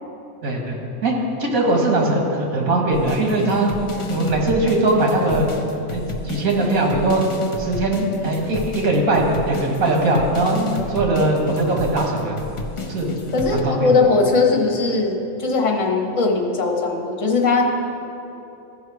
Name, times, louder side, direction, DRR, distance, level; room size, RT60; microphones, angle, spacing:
voice 1, 0.4-0.8 1.0-3.7 4.1-5.5 5.9-7.2 7.6-12.4 12.9-13.1 13.5-13.9, right 2 dB, 85° right, 0 dB, 1.8 m, -20 dB
sound 1, 2.9-13.6, left 3 dB, 40° left, 0.5 m, -31 dB
voice 2, 13.3-17.6, left 3 dB, 65° left, 1 dB, 1.5 m, -19 dB
14.0 x 5.5 x 4.7 m, 2.9 s
omnidirectional pair, 1.5 m